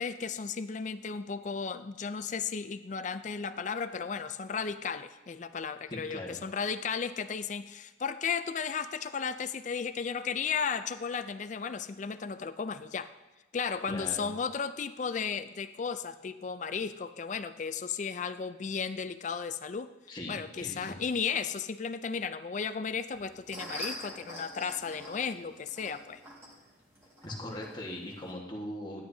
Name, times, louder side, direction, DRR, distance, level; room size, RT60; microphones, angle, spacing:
voice 1, 0.0-13.1 13.5-19.9 20.3-26.2, left 6 dB, 40° left, 12 dB, 0.4 m, -34 dB
voice 2, 5.9-6.4 13.9-14.3 20.1-21.0 27.2-29.0, left 1 dB, 25° left, -2 dB, 1.4 m, -40 dB
sound 1, 23.1-28.3, equal, 15° right, 1.9 m, -45 dB
12.0 x 9.7 x 2.7 m, 1.1 s
head